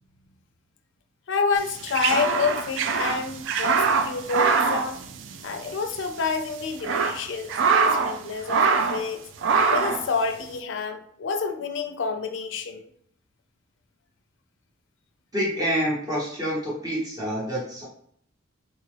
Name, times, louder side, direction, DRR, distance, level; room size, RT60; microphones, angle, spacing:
voice 1, 1.3-5.0 5.4-9.2 9.7-12.9, left 4 dB, 65° left, 7 dB, 0.4 m, -28 dB
sound 1, 1.6-5.7 6.0-6.1 6.6-8.2 8.5-9.1 9.4-10.1, right 5 dB, 70° right, 0.3 m, -23 dB
voice 2, 15.3-17.9, equal, 20° right, -6 dB, 0.9 m, -27 dB
4.1 x 2.3 x 3.2 m, 0.66 s
head